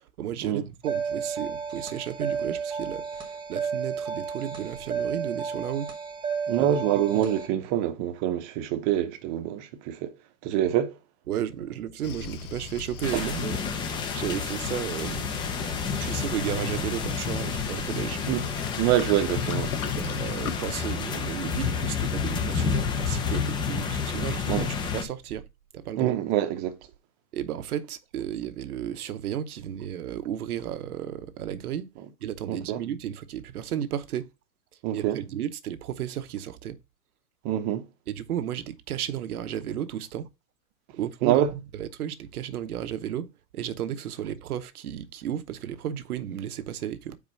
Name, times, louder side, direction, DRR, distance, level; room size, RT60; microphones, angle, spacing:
voice 1, 0.2-5.9 6.6-7.2 11.3-13.6 14.1-15.3 16.0-18.2 19.8-24.7 24.9-25.4 25.7-26.2 27.3-31.9 32.2-34.3 34.9-36.8 38.1-40.3 40.9-41.4 41.8-47.2, right 10 dB, 90° right, 1.0 m, -33 dB
sound 1, 0.8-7.5, right 6 dB, 10° right, 1.1 m, -32 dB
voice 2, 6.5-10.1 10.4-10.9 13.1-13.3 18.3-18.4 18.8-19.7 24.5-24.7 26.0-26.8 32.5-32.8 34.8-35.2 37.4-37.9 41.2-41.5, right 11 dB, 30° right, 0.8 m, -25 dB
Waves surf, 12.0-20.9, left 7 dB, 80° left, 1.3 m, -40 dB
sound 2, 13.0-25.0, left 6 dB, 10° left, 0.5 m, -30 dB
4.9 x 4.9 x 5.4 m
supercardioid pair, 150°, 44 cm